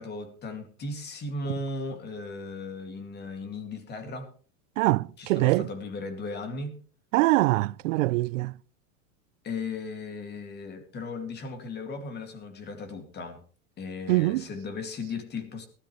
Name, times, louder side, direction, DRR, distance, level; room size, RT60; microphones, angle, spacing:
voice 1, 0.0-4.3 5.2-6.8 9.4-13.4 13.8-15.7, left 3 dB, 25° left, 2.4 m, -36 dB
voice 2, 4.8-5.7 7.1-8.5 14.1-14.4, right 20 dB, 80° right, 0.6 m, -23 dB
18.5 x 13.0 x 3.2 m
supercardioid pair, 140°, 38 cm